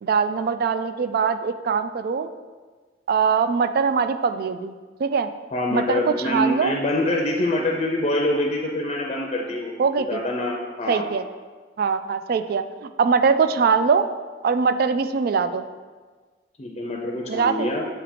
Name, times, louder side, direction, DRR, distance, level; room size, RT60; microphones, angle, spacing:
voice 1, 0.0-2.3 3.1-4.7 5.0-5.3 5.7-6.7 9.8-10.2 10.9-11.2 11.8-14.1 14.4-15.6 17.3-17.7, right 5 dB, 55° right, 10 dB, 0.3 m, -22 dB
voice 2, 5.5-11.1 16.6-17.9, left 1 dB, 35° left, 0 dB, 0.5 m, -25 dB
7.2 x 2.9 x 4.9 m, 1.4 s
head